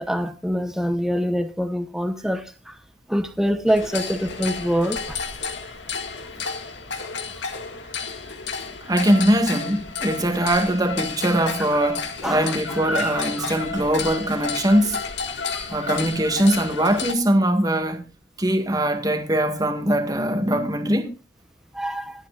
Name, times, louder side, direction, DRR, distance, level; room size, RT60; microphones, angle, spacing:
voice 1, 0.0-2.4 3.1-5.2 11.7-11.8 12.2-13.5 15.5-15.7 21.7-22.1, equal, 5° right, 0.9 m, -25 dB
sound 1, 3.7-17.1, left 5 dB, 90° left, 2.0 m, -31 dB
voice 2, 8.9-15.0 15.7-18.1 18.4-21.1, right 1 dB, 20° right, 1.8 m, -21 dB
26.0 x 9.2 x 2.5 m
head